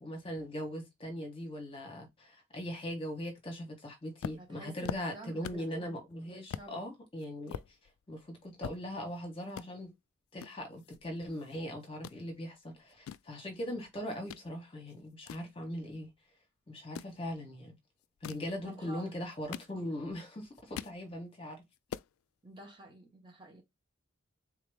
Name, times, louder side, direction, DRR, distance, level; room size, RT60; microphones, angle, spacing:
voice 1, 0.0-7.6 8.1-9.9 10.3-16.1 16.7-17.8 18.2-21.6, equal, 25° left, 1.2 m, -40 dB
sound 1, 4.2-5.8 6.1-6.2 6.5-6.7 7.2-9.2 9.5-9.7 10.4-11.6 11.8-12.2 12.8-14.5 14.9-16.2 16.8-17.2 18.0-18.5 19.2-20.1 20.4-21.0 21.4-21.5 21.7-22.1, left 8 dB, 90° left, 0.3 m, -43 dB
voice 2, 4.4-5.9 6.5-6.9 18.6-19.1 22.4-23.6, right 2 dB, 20° right, 1.1 m, -50 dB
3.6 x 2.9 x 3.4 m
head